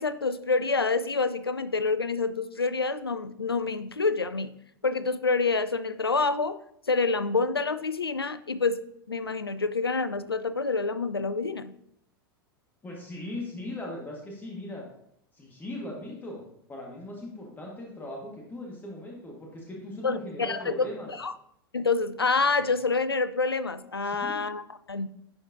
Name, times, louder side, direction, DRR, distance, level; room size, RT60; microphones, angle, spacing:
voice 1, 0.0-4.6 4.8-6.6 6.9-11.7 20.0-20.8 21.2-21.3 21.7-24.6 24.9-25.1, left 4 dB, 85° left, 13 dB, 0.4 m, -27 dB
voice 2, 12.8-14.8 15.3-16.4 16.7-21.1 24.0-24.4, left 1 dB, 15° left, -2 dB, 1.5 m, -39 dB
10.5 x 4.6 x 2.6 m, 0.72 s
figure-of-eight pair, 90°, 12 cm